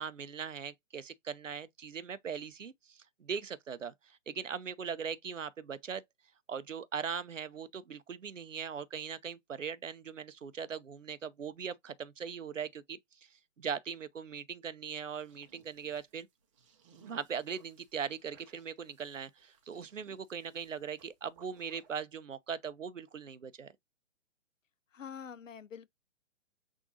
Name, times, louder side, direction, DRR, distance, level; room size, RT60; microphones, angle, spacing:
voice 1, 0.0-6.0 6.5-13.3 13.6-16.3 17.1-23.7, right 7 dB, 80° right, 0.7 m, -40 dB
sound 1, 14.8-21.9, right 6 dB, 25° right, 0.7 m, -64 dB
voice 2, 24.9-25.9, left 7 dB, 80° left, 0.5 m, -46 dB
6.2 x 2.6 x 2.6 m
figure-of-eight pair, 130°, 38 cm